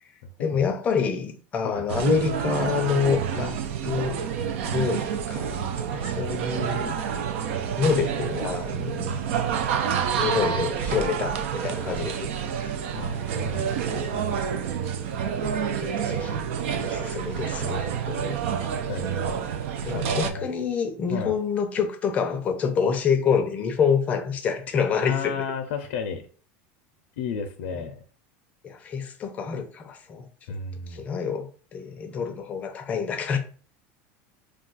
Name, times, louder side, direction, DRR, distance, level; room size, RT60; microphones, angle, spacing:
voice 1, 0.4-3.6 3.8-4.2 4.6-7.0 7.8-9.2 10.2-12.3 15.3-16.5 16.8-18.4 19.8-25.4 27.7-27.8 28.6-30.3 30.9-33.4, left 6 dB, 20° left, 0.4 m, -27 dB
sound 1, 1.9-20.3, right 7 dB, 85° right, 0.4 m, -28 dB
voice 2, 12.9-14.2 18.9-19.5 19.9-20.5 21.1-21.3 25.0-26.2 27.2-28.0 30.5-31.0, left 5 dB, 80° left, 0.4 m, -33 dB
2.3 x 2.3 x 3.9 m
supercardioid pair, 155°, 6 cm